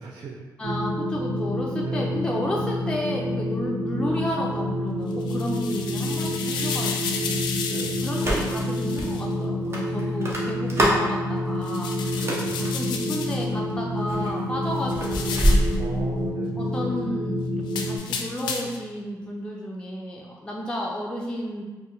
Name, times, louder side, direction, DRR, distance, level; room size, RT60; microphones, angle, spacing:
voice 1, 0.0-0.4 1.8-2.2 7.7-8.1 12.2-12.7 15.8-16.6, right 4 dB, 60° right, -1 dB, 0.4 m, -37 dB
voice 2, 0.6-7.7 8.0-11.9 12.6-15.6 16.0-21.6, left 1 dB, 15° left, -3 dB, 0.5 m, -32 dB
sound 1, 0.6-18.0, left 1 dB, 85° right, 1.0 m, -28 dB
sound 2, 5.1-9.2 11.6-13.5 14.9-15.8 17.7-18.9, left 5 dB, 90° left, 0.4 m, -33 dB
sound 3, 8.1-8.7 9.0-9.1 9.7-11.1 12.0-12.7 13.4-13.7 14.1-16.3, equal, 35° right, 1.0 m, -24 dB
4.4 x 2.1 x 3.0 m, 1.3 s
cardioid pair, 65°, 7 cm